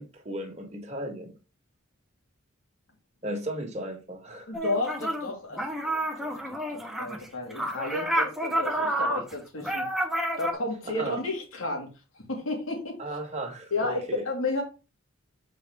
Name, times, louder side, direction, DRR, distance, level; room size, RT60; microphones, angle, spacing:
voice 1, 0.0-1.3 3.2-4.6 10.8-11.2 13.0-14.2, right 1 dB, 35° right, 1.6 m, -35 dB
voice 2, 4.5-6.3 6.7-9.8 10.4-11.9 12.3-13.0 13.7-14.6, left 2 dB, 80° left, 2.9 m, -32 dB
sound 1, 4.5-5.3 5.6-10.5, right 1 dB, ahead, 1.1 m, -29 dB
7.2 x 5.3 x 3.6 m
head